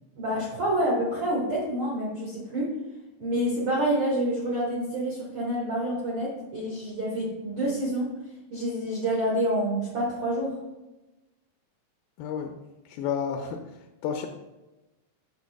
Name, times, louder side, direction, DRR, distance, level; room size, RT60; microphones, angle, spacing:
voice 1, 0.2-2.7 3.2-8.1 8.5-10.6, right 1 dB, 80° right, -5 dB, 1.2 m, -27 dB
voice 2, 12.2-12.6 12.9-13.7 14.0-14.3, left 7 dB, 80° left, 3 dB, 2.2 m, -30 dB
8.1 x 6.8 x 2.3 m, 1.0 s
omnidirectional pair, 4.6 m